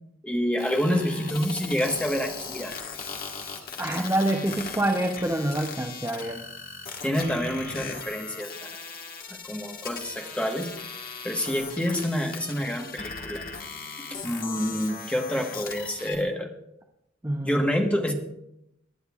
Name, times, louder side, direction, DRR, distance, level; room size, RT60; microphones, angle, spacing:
voice 1, 0.2-2.8 7.0-8.7 9.3-10.7 11.2-13.4 14.1-16.5 17.4-18.1, equal, 5° left, 2 dB, 1.2 m, -28 dB
sound 1, 0.6-16.2, left 5 dB, 45° left, 1.5 m, -38 dB
voice 2, 3.8-6.4 17.2-17.6, right 1 dB, 15° right, 2 dB, 0.6 m, -26 dB
24.0 x 9.8 x 2.4 m, 0.83 s
head